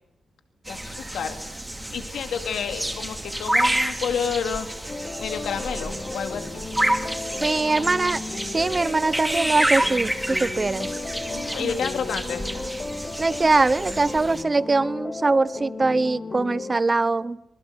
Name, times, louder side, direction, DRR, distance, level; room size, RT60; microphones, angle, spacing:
voice 1, 0.7-1.4 1.9-4.7 5.2-6.4 7.3-7.5 7.8-7.9 11.3-12.5, left 7 dB, 80° left, 6 dB, 2.4 m, -30 dB
sound 1, 0.7-14.4, right 1 dB, 10° right, 2.7 m, -29 dB
sound 2, 4.9-16.8, left 3 dB, 30° left, 1.6 m, -35 dB
voice 2, 7.4-10.9 11.6-11.8 13.2-17.4, right 3 dB, 25° right, 17 dB, 0.9 m, -22 dB
26.0 x 21.5 x 8.1 m, 0.81 s
cardioid pair, 105°, 0 cm